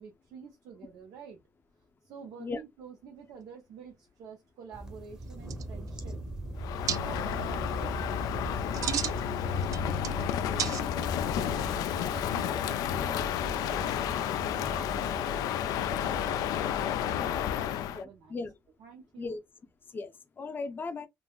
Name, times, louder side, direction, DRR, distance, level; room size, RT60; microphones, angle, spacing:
voice 1, 0.0-1.4 2.0-6.2 6.8-7.9 8.7-15.3 16.0-18.4 18.8-19.4, right 6 dB, 90° right, 0.8 m, -48 dB
sound 1, 4.7-17.6, right 1 dB, 15° right, 0.8 m, -40 dB
sound 2, 5.2-5.3 5.5-6.0 6.9-7.0 8.5-9.2 9.6-10.2 10.6-11.2, right 10 dB, 65° right, 0.4 m, -33 dB
Crow, 6.6-18.0, left 10 dB, 85° left, 0.3 m, -31 dB
voice 2, 18.0-18.5 19.2-19.4 19.9-21.1, left 3 dB, 35° left, 0.6 m, -37 dB
3.7 x 2.0 x 2.3 m
cardioid pair, 115°, 6 cm